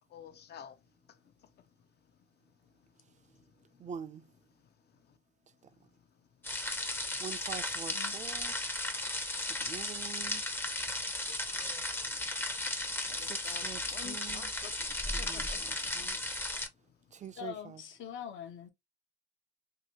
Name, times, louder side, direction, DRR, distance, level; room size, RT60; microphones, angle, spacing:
voice 1, 0.1-0.8 13.0-15.8, left 9 dB, 55° left, 0.5 m, -49 dB
voice 2, 3.8-4.3 7.2-8.5 9.4-10.4 12.0-12.2 13.1-14.5 15.1-16.2 17.1-17.8, right 7 dB, 35° right, 0.5 m, -46 dB
sound 1, 6.4-16.7, left 2 dB, 10° left, 0.5 m, -35 dB
voice 3, 17.4-18.7, left 8 dB, 75° left, 0.9 m, -43 dB
2.8 x 2.7 x 2.8 m
cardioid pair, 90°, 20 cm